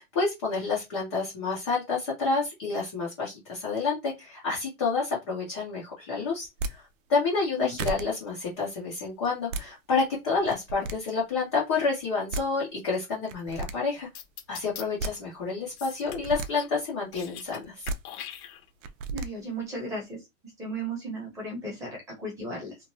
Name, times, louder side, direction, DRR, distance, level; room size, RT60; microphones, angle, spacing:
voice 1, 0.1-14.1 14.5-17.9, left 4 dB, 20° left, -5 dB, 0.4 m, -29 dB
sound 1, 6.4-6.7 7.4-7.5 7.8-8.0 9.2-9.7 10.4-10.9 12.0-12.1 12.3-12.5 13.3-13.7 14.7-15.1 16.0-16.5 17.6-18.0 18.8-19.3, right 3 dB, 65° right, 0.5 m, -33 dB
sound 2, 14.1-14.8 15.8-16.7 17.0-17.6 17.9-18.9, left 10 dB, 80° left, 1.0 m, -42 dB
voice 2, 19.1-22.8, right 2 dB, 5° right, -3 dB, 0.7 m, -36 dB
2.9 x 2.1 x 2.6 m, 0.21 s
supercardioid pair, 170°, 42 cm